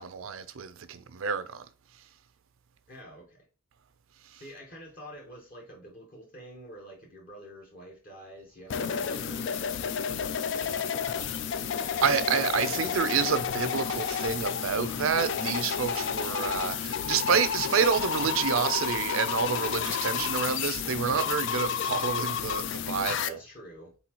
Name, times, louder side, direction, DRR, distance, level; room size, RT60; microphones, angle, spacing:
voice 1, 0.0-1.7 4.3-4.4 11.7-23.4, right 6 dB, 70° right, 0.5 m, -28 dB
voice 2, 2.9-3.4 4.3-9.5 9.9-11.4 20.1-20.3 23.2-23.9, equal, 40° left, 1.1 m, -48 dB
sound 1, 8.7-23.3, left 7 dB, 55° left, 0.3 m, -31 dB
4.1 x 4.0 x 2.9 m
head